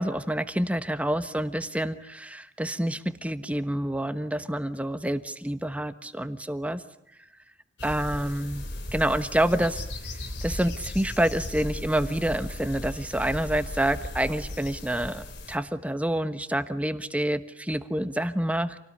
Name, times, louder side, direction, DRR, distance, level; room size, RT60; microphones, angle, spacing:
voice 1, 0.0-6.8 7.8-8.7 8.9-9.8 10.4-18.8, right 1 dB, 5° right, 11 dB, 1.2 m, -28 dB
sound 1, 7.8-15.6, left 1 dB, 65° left, 3.4 m, -36 dB
28.0 x 19.0 x 9.9 m, 0.76 s
head